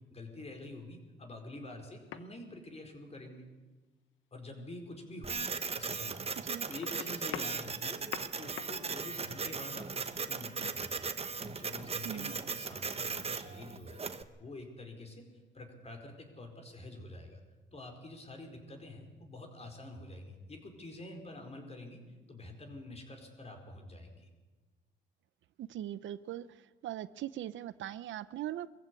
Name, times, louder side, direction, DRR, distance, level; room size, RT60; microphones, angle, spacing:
voice 1, 0.1-3.5 4.3-5.4 5.7-6.3 6.7-11.1 11.4-15.2 15.5-17.4 17.7-22.0 22.3-24.3, left 2 dB, 30° left, 4 dB, 4.8 m, -47 dB
sound 1, 1.9-2.3 4.5-4.6 5.3-5.4 6.4-8.8 10.1-10.2, left 11 dB, 85° left, 1.1 m, -44 dB
Printer, 5.2-14.2, right 5 dB, 30° right, 1.2 m, -38 dB
voice 2, 25.6-26.5 26.8-28.7, right 12 dB, 75° right, 16 dB, 0.7 m, -40 dB
22.5 x 15.0 x 8.5 m, 1.2 s
cardioid pair, 90°, 20 cm